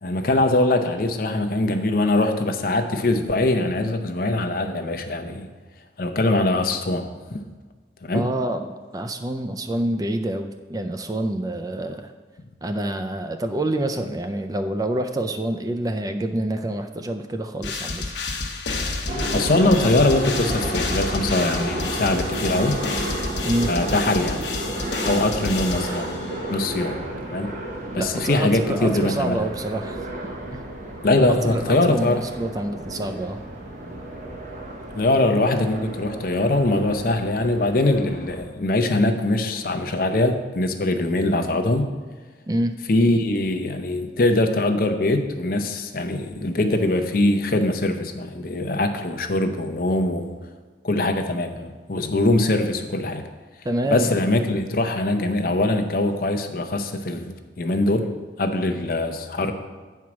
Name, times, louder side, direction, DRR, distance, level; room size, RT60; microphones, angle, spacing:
voice 1, 0.0-5.5 6.0-7.4 8.0-8.2 19.3-22.8 23.7-24.4 25.0-27.0 27.3-27.5 27.9-29.4 31.0-32.2 34.9-41.9 42.9-50.3 50.8-53.2 53.9-58.1 58.4-59.5, left 2 dB, 50° left, 7 dB, 0.6 m, -22 dB
voice 2, 8.1-12.1 12.6-18.1 23.4-23.7 27.9-30.0 30.5-30.6 31.3-33.4 42.5-42.7 53.6-54.1, right 1 dB, 20° right, 7 dB, 0.3 m, -27 dB
sound 1, 17.6-26.4, left 3 dB, 75° left, 1.0 m, -30 dB
sound 2, 19.1-38.4, right 1 dB, 45° right, 1.0 m, -32 dB
8.3 x 4.6 x 6.0 m, 1.4 s
head